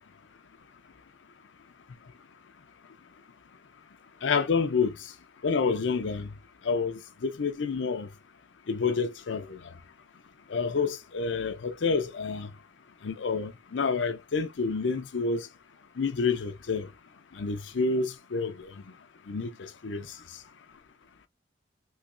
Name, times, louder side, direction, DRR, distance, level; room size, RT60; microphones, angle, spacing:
voice 1, 4.2-4.9 5.4-6.3 6.7-8.1 8.7-9.6 10.5-12.5 13.0-15.5 16.0-16.9 17.4-18.7 19.3-20.1, left 4 dB, 85° left, 0.6 m, -28 dB
3.2 x 3.0 x 2.5 m
head